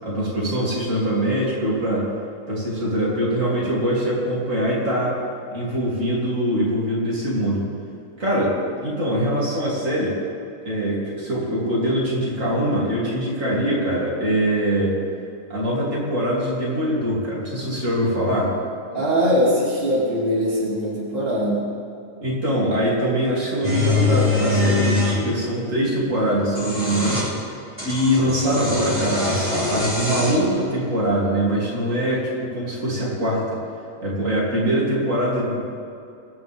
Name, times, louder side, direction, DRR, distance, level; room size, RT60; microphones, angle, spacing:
voice 1, 0.0-2.1 2.5-5.2 5.5-7.6 8.2-10.1 10.7-15.0 15.5-18.6 22.2-27.2 27.8-33.6 34.0-35.8, equal, 70° right, -6 dB, 3.8 m, -23 dB
voice 2, 18.9-21.6, equal, 45° right, -7 dB, 3.1 m, -21 dB
sound 1, 23.6-25.2 26.4-27.3 27.8-30.5, left 2 dB, 10° right, 4.3 m, -23 dB
23.0 x 11.0 x 3.7 m, 2.6 s
omnidirectional pair, 1.4 m